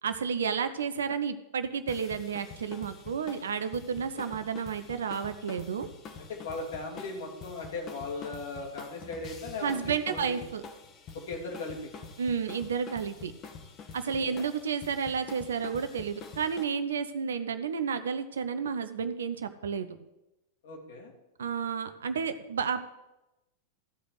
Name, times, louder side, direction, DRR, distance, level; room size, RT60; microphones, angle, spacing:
voice 1, 0.0-5.9 9.6-10.6 12.2-13.3 13.9-19.9 21.4-22.8, right 6 dB, 65° right, 10 dB, 0.6 m, -31 dB
sound 1, 1.9-16.6, left 5 dB, 35° left, 1.4 m, -46 dB
voice 2, 6.2-10.4 11.1-11.9 14.0-14.5 20.6-21.1, left 3 dB, 60° left, 1 dB, 2.6 m, -38 dB
14.0 x 5.0 x 8.0 m, 0.96 s
figure-of-eight pair, 90°, 0 cm